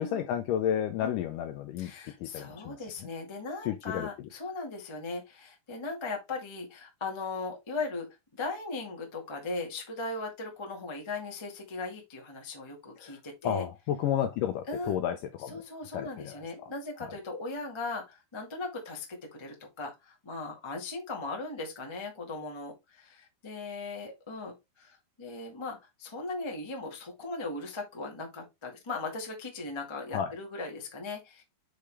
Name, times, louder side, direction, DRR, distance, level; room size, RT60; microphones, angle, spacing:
voice 1, 0.0-1.9 2.2-2.9 3.7-4.1 13.0-13.2 13.4-15.6 15.9-16.4 17.0-17.2 30.1-30.3, left 10 dB, 80° left, 2.0 m, -31 dB
voice 2, 1.8-13.6 14.7-15.0 15.5-31.4, left 3 dB, 30° left, 0.5 m, -38 dB
6.6 x 5.2 x 3.4 m
omnidirectional pair, 4.4 m